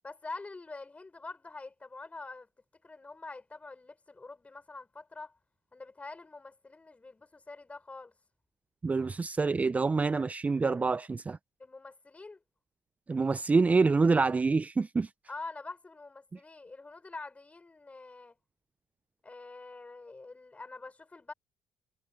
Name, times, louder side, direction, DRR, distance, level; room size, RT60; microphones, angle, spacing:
voice 1, 0.0-2.5 2.8-5.4 5.7-8.1 11.6-12.4 15.3-18.4 19.2-21.3, left 3 dB, 20° left, 5.7 m, -45 dB
voice 2, 8.8-11.4 13.1-15.1, right 4 dB, 25° right, 0.5 m, -26 dB
supercardioid pair, 65°, 6 cm